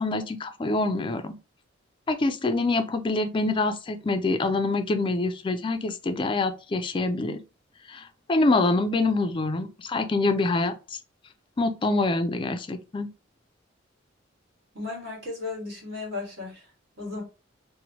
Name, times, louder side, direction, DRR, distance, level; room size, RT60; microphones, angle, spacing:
voice 1, 0.0-1.4 2.1-7.4 7.9-11.0 11.6-13.1, left 2 dB, 25° left, 0.3 m, -25 dB
voice 2, 14.7-16.7 17.0-17.2, left 3 dB, 55° right, 1.5 m, -35 dB
3.0 x 2.1 x 2.6 m
head